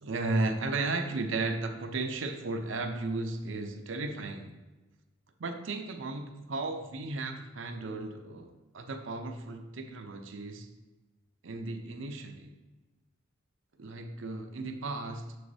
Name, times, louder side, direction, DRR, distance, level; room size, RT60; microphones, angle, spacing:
voice 1, 0.0-4.5 5.4-10.7 11.4-12.5 13.8-15.4, right 3 dB, 75° right, 6 dB, 0.6 m, -35 dB
6.9 x 6.3 x 2.7 m, 1.2 s
head